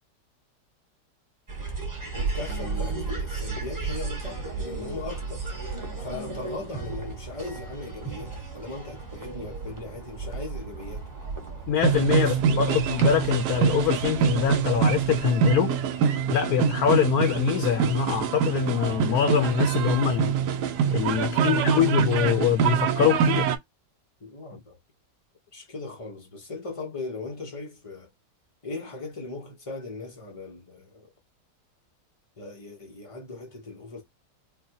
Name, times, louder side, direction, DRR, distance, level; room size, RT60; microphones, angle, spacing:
sound 1, 1.5-15.2, right 4 dB, 15° right, 1.0 m, -35 dB
voice 1, 2.1-5.4 6.0-11.1 12.1-12.8 21.2-21.8 24.2-24.8 25.5-28.1 28.6-31.1 32.4-34.0, left 3 dB, 40° left, 0.4 m, -38 dB
voice 2, 11.7-15.7 16.3-20.4 20.9-23.5, left 8 dB, 70° left, 1.0 m, -24 dB
sound 2, 11.8-23.6, right 7 dB, 75° right, 1.2 m, -25 dB
3.9 x 2.2 x 2.7 m
omnidirectional pair, 1.8 m